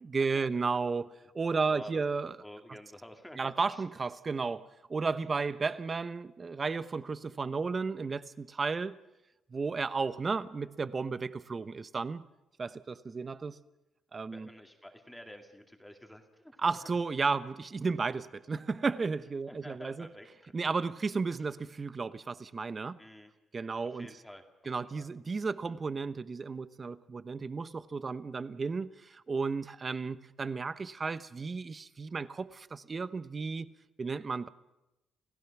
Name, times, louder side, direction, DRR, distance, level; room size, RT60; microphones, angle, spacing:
voice 1, 0.0-2.4 3.4-9.0 9.5-12.3 12.6-13.6 14.1-14.5 16.6-20.1 20.5-23.0 23.5-24.1 24.6-33.7 34.0-34.5, right 4 dB, 35° right, 0.9 m, -33 dB
voice 2, 1.7-2.0 2.4-3.9 14.3-16.9 19.5-20.5 23.0-23.3 23.8-24.4 24.8-25.1, left 1 dB, 5° left, 2.4 m, -49 dB
29.5 x 16.0 x 6.0 m
cardioid pair, 90°, 0 cm